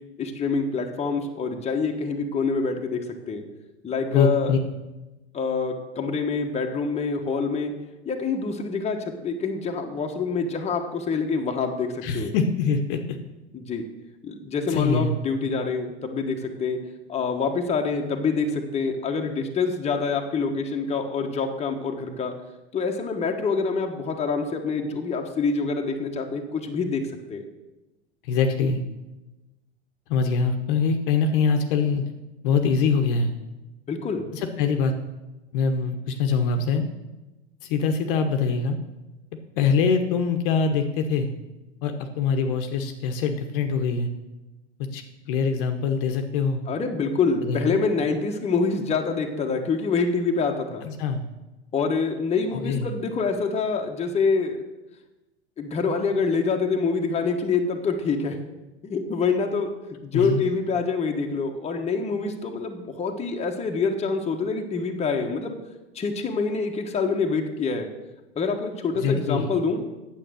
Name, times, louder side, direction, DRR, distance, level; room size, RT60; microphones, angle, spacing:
voice 1, 0.2-3.0 3.3-3.4 3.8-4.5 5.3-7.7 8.0-12.3 13.5-13.8 14.2-16.8 17.1-22.3 22.7-27.0 27.3-27.4 33.9-34.3 46.7-50.9 51.7-54.6 55.6-58.4 58.8-59.7 60.0-65.5 65.9-67.9 68.4-69.8, left 4 dB, 20° left, 2 dB, 1.3 m, -26 dB
voice 2, 4.1-4.6 12.0-13.2 14.7-15.1 28.2-28.8 30.1-32.0 32.4-33.3 34.3-34.9 35.5-36.8 37.6-38.8 39.6-41.3 41.8-44.1 44.9-46.6 47.4-47.7 50.9-51.2 52.5-52.9 60.1-60.4 69.0-69.5, left 5 dB, 50° left, 6 dB, 1.1 m, -23 dB
9.0 x 7.8 x 6.4 m, 1.1 s
hypercardioid pair, 95°, 33 cm